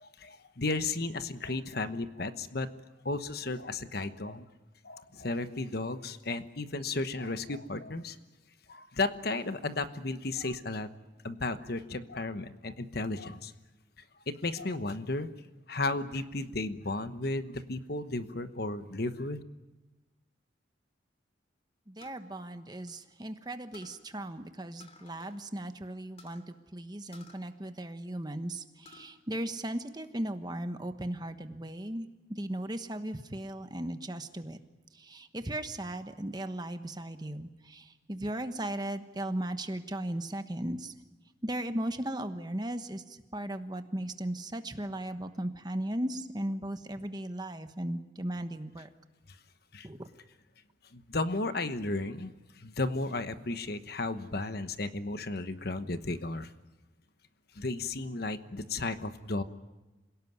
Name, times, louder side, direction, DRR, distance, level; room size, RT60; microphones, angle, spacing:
voice 1, 0.0-2.7 3.0-4.4 4.8-8.2 8.7-10.9 11.2-13.5 14.4-15.3 15.7-19.4 49.7-49.9 50.9-56.5 57.6-59.4, left 2 dB, 55° left, 10 dB, 1.1 m, -34 dB
voice 2, 21.9-34.6 34.9-40.9 41.4-48.9 49.8-50.1, right 1 dB, 20° right, 8 dB, 1.2 m, -37 dB
sound 1, 22.0-23.4 23.7-24.1 24.8-25.4 25.7-25.8 26.2-26.5 27.1-28.2 28.6-29.1 29.5-30.3, left 3 dB, 30° left, 2.8 m, -56 dB
27.0 x 17.5 x 9.6 m, 1.1 s
head